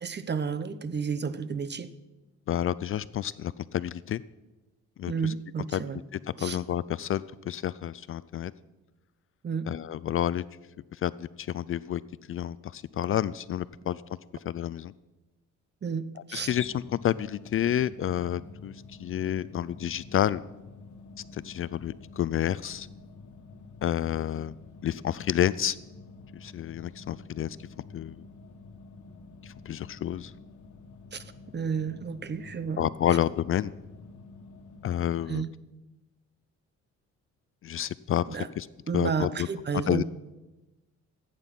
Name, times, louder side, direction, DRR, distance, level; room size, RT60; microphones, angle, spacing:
voice 1, 0.0-1.9 5.1-6.0 6.4-6.6 9.4-9.7 15.8-16.5 31.1-31.2 31.5-32.8 35.3-35.5 38.3-38.5 38.9-40.0, right 6 dB, 35° right, 14 dB, 0.9 m, -31 dB
voice 2, 2.5-4.2 5.0-5.3 5.7-5.8 6.4-8.5 9.7-10.4 11.0-12.0 12.3-14.0 14.5-14.9 16.3-18.7 19.0-20.4 21.3-22.9 23.8-24.5 24.8-25.8 26.3-27.6 27.9-28.2 29.4-30.3 32.8-33.7 34.8-35.4 37.6-38.2 38.6-38.7 38.9-39.5 39.9-40.0, left 11 dB, 45° left, 17 dB, 0.4 m, -29 dB
sound 1, 16.4-35.3, left 3 dB, 70° left, 1.5 m, -49 dB
15.0 x 9.1 x 5.9 m, 1.1 s
cardioid pair, 90°, 30 cm